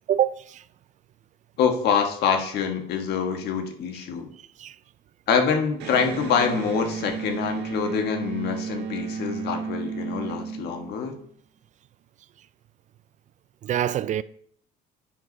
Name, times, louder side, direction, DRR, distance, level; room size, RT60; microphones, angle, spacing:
voice 1, 0.1-0.7 4.4-4.8 13.6-14.2, right 10 dB, 45° right, 0.4 m, -26 dB
voice 2, 1.6-4.3 5.3-11.2, left 6 dB, 75° left, 1.4 m, -25 dB
Electric guitar, 5.8-11.3, right 6 dB, 90° right, 1.5 m, -33 dB
9.2 x 4.7 x 5.4 m
cardioid pair, 110°, 17 cm